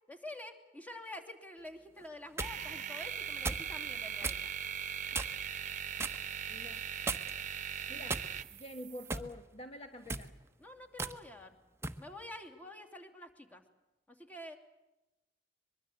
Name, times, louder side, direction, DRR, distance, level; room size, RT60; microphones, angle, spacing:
voice 1, 0.1-4.5 10.6-11.6 12.0-13.6 14.1-14.6, left 1 dB, 10° left, 3 dB, 2.8 m, -48 dB
sound 1, 2.0-2.6 3.4-3.7 4.2-4.4 5.1-5.5 6.0-6.2 7.1-7.5 8.1-8.6 9.1-9.3 10.0-10.3 11.0-11.2 11.8-12.0, right 3 dB, 15° right, 1.0 m, -37 dB
sound 2, 2.4-9.2, right 8 dB, 45° right, 1.1 m, -40 dB
voice 2, 6.5-6.9 7.9-8.2 8.5-10.3, left 1 dB, 35° left, 6 dB, 1.4 m, -47 dB
23.5 x 23.0 x 8.0 m, 0.99 s
head